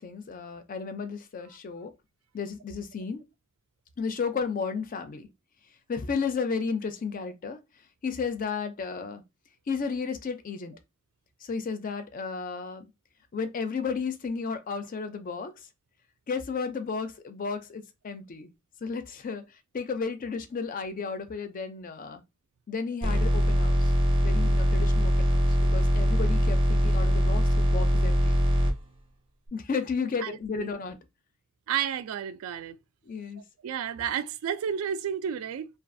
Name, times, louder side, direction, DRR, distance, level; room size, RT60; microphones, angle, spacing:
voice 1, 0.0-1.9 2.3-3.2 4.0-5.3 5.9-7.6 8.0-9.2 9.7-10.7 11.4-12.8 13.3-15.5 16.3-18.5 18.8-19.4 19.7-22.2 22.7-23.9 24.2-28.4 29.5-31.0 33.1-33.4, left 5 dB, 40° left, 0.4 m, -33 dB
sound 1, 23.0-28.7, equal, 25° right, 0.5 m, -22 dB
voice 2, 30.2-30.7 31.7-32.8 33.6-35.7, right 8 dB, 85° right, 0.3 m, -31 dB
2.4 x 2.3 x 2.5 m
head